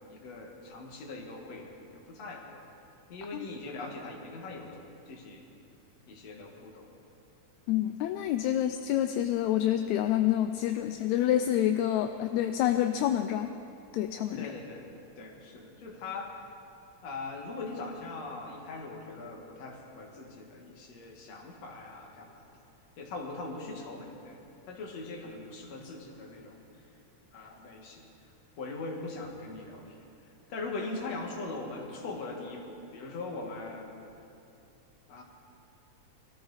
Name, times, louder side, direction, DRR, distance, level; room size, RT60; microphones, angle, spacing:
voice 1, 0.1-2.6 3.1-4.8 5.1-5.4 6.1-6.9 14.3-14.8 15.2-16.3 17.0-22.5 23.0-24.4 24.7-26.6 27.3-28.1 28.6-30.0 30.5-33.9 35.1-35.2, left 3 dB, 60° left, 1 dB, 2.8 m, -41 dB
voice 2, 7.7-13.5 13.9-14.5, left 11 dB, 80° left, 8 dB, 1.8 m, -28 dB
22.0 x 14.0 x 4.1 m, 2.7 s
omnidirectional pair, 3.4 m